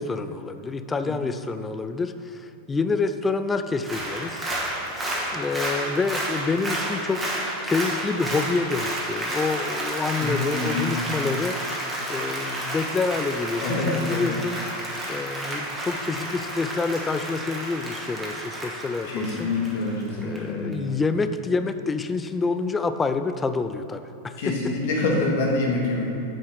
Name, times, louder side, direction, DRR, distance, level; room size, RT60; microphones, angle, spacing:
voice 1, 0.0-4.5 5.3-7.3 7.6-11.6 12.1-14.6 15.1-19.5 20.2-24.8, left 4 dB, 15° left, 10 dB, 0.3 m, -27 dB
Applause, 3.7-20.4 20.7-20.8, right 1 dB, 15° right, 1.5 m, -31 dB
voice 2, 10.2-11.0 13.6-14.3 19.1-20.7 24.4-26.0, left 2 dB, 50° left, -1 dB, 1.5 m, -26 dB
7.1 x 4.5 x 5.8 m, 2.8 s
figure-of-eight pair, 90°, 0 cm